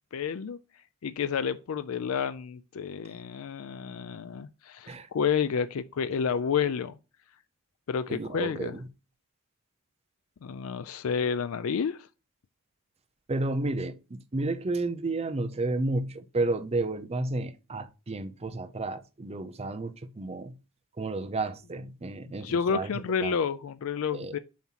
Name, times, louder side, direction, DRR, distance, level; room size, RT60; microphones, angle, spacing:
voice 1, 0.1-0.6 1.0-6.9 7.9-8.8 10.4-12.0 22.4-24.4, left 6 dB, 65° left, 0.4 m, -30 dB
voice 2, 8.1-8.9 13.3-20.5 21.0-22.9 23.2-23.4 24.1-24.3, right 2 dB, 30° right, 0.5 m, -32 dB
7.2 x 3.0 x 5.7 m
head